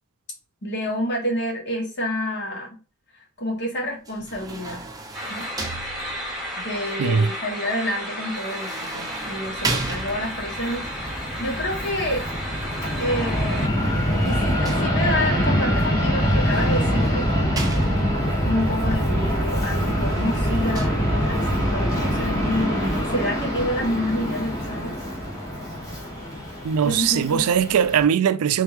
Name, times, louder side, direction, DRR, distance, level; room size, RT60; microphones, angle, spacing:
voice 1, 0.6-2.7 3.4-4.9 5.3-5.5 6.6-12.3 13.0-13.8 14.2-17.8 18.3-25.0 26.8-27.5, left 1 dB, 55° left, 1.6 m, -28 dB
sound 1, 4.0-6.5 8.4-10.6 13.5-15.3 16.3-18.3 19.7-20.9, right 3 dB, 15° right, 0.7 m, -35 dB
sound 2, 5.1-13.7, equal, ahead, 1.5 m, -33 dB
voice 2, 7.0-7.3 26.6-28.6, right 7 dB, 85° right, 0.4 m, -20 dB
Fixed-wing aircraft airplane, 10.2-28.0, equal, 15° left, 1.5 m, -24 dB
3.7 x 3.5 x 3.0 m
head